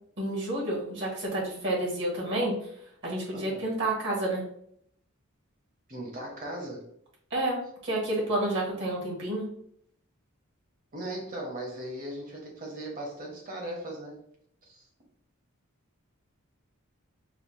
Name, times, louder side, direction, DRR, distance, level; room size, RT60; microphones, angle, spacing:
voice 1, 0.2-2.5 3.0-4.4 7.3-9.5, right 1 dB, 55° right, -3 dB, 1.3 m, -29 dB
voice 2, 3.3-3.6 5.9-6.8 10.9-14.1 14.7-14.8, right 1 dB, 40° right, -1 dB, 1.0 m, -38 dB
4.9 x 2.1 x 2.6 m, 0.69 s
head